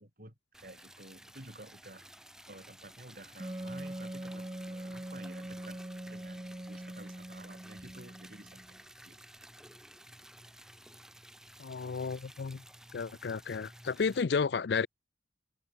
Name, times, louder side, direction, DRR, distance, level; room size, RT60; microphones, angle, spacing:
voice 1, 0.0-2.1 2.5-9.2, right 1 dB, 50° right, 7.4 m, -52 dB
Liquid, 0.5-14.2, right 1 dB, 5° right, 4.9 m, -54 dB
Wind instrument woodwind instrument, 3.4-8.8, right 1 dB, 20° right, 0.9 m, -42 dB
voice 2, 11.6-12.6 12.9-14.9, left 5 dB, 65° left, 0.5 m, -32 dB
head